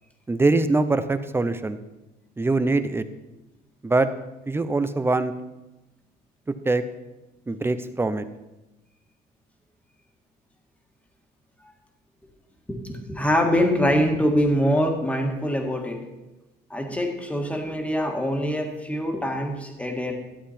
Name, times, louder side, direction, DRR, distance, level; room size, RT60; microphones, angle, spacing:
voice 1, 0.3-1.8 2.4-3.0 3.8-4.1 4.5-5.3 6.6-6.8 7.5-8.3, right 3 dB, 15° right, 12 dB, 0.6 m, -23 dB
voice 2, 12.7-16.0 16.7-20.1, equal, 10° left, 2 dB, 1.8 m, -24 dB
12.5 x 7.9 x 4.3 m, 1.0 s
cardioid pair, 110°, 17 cm